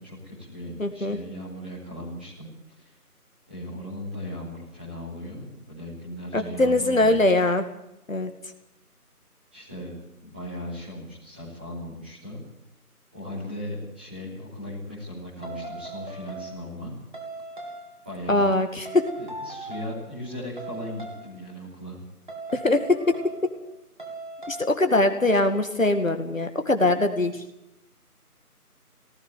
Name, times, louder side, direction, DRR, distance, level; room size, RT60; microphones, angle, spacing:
voice 1, 0.0-3.0 3.5-7.2 9.5-9.9 10.2-12.4 13.1-16.9 18.0-18.4 19.1-22.0, left 1 dB, 5° right, -10 dB, 3.5 m, -37 dB
voice 2, 0.8-1.2 6.3-7.6 8.1-8.3 18.3-19.0 22.5-23.0 24.5-27.4, left 2 dB, 55° left, 6 dB, 2.4 m, -22 dB
sound 1, 15.4-16.8 17.1-18.0 18.8-20.1 20.6-21.3 22.3-23.7 24.0-24.7, right 2 dB, 30° right, 2.7 m, -39 dB
18.5 x 16.0 x 9.4 m, 0.84 s
figure-of-eight pair, 175°, 46 cm